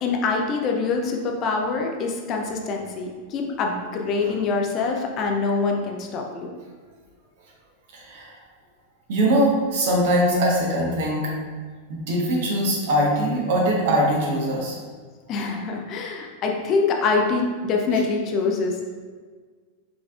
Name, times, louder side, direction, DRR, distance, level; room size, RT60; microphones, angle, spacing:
voice 1, 0.0-6.5 15.3-18.9, left 4 dB, 35° left, 1 dB, 0.5 m, -25 dB
voice 2, 7.9-8.3 9.1-11.3 11.9-14.8, right 1 dB, 55° right, -3 dB, 1.1 m, -22 dB
5.1 x 3.5 x 2.4 m, 1.5 s
figure-of-eight pair, 90°, 0 cm